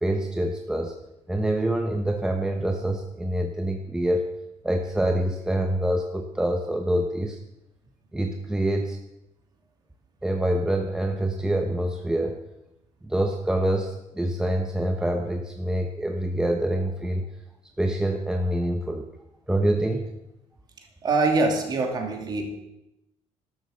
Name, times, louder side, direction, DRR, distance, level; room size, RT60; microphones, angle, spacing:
voice 1, 0.0-0.9 1.3-4.3 4.6-7.4 8.1-9.0 10.2-12.4 13.1-17.2 17.8-19.0 19.5-20.0, right 1 dB, 5° right, 4 dB, 0.8 m, -26 dB
voice 2, 21.0-22.5, right 3 dB, 35° right, 3 dB, 2.7 m, -24 dB
12.5 x 12.0 x 6.5 m, 0.88 s
cardioid pair, 155°, 12 cm